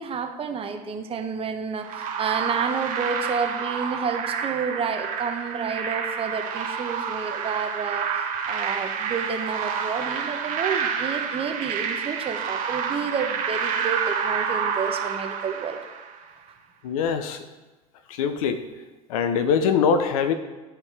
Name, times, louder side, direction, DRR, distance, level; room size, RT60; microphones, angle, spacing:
voice 1, 0.0-15.8, right 6 dB, 30° right, 4 dB, 1.0 m, -30 dB
sound 1, 1.8-16.2, right 7 dB, 45° right, 1.4 m, -29 dB
voice 2, 16.8-17.4 18.1-18.6 19.1-20.3, left 6 dB, 70° left, 10 dB, 0.7 m, -23 dB
11.5 x 4.4 x 3.4 m, 1.2 s
hypercardioid pair, 75°, 19 cm